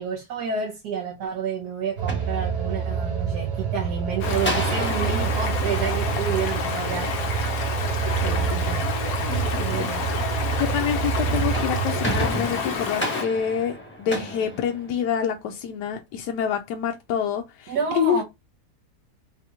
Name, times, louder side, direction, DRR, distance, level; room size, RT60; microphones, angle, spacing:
voice 1, 0.0-7.7 8.2-8.8 9.6-10.0 17.7-18.2, right 6 dB, 75° right, 1.4 m, -30 dB
sound 1, 1.9-3.1 4.4-6.9 11.3-15.4, equal, 10° left, 1.2 m, -32 dB
sound 2, 2.0-12.3, right 7 dB, 45° right, 1.2 m, -27 dB
Stream, 4.2-13.2, left 6 dB, 65° left, 1.2 m, -29 dB
voice 2, 9.5-9.9 10.6-18.2, left 8 dB, 90° left, 1.2 m, -27 dB
4.0 x 2.8 x 3.5 m
omnidirectional pair, 1.7 m